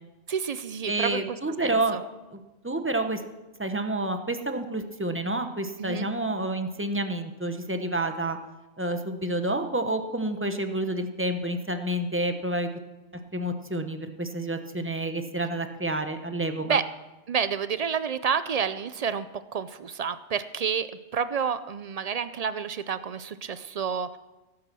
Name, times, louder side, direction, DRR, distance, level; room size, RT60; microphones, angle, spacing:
voice 1, 0.3-2.0 5.8-6.1 16.6-16.9 17.3-24.2, right 7 dB, 60° right, 13 dB, 0.4 m, -29 dB
voice 2, 0.9-2.0 2.3-3.2 3.6-8.4 8.8-12.7 13.3-16.8, right 1 dB, 10° right, 7 dB, 0.8 m, -29 dB
17.0 x 8.6 x 6.2 m, 1.1 s
omnidirectional pair, 1.3 m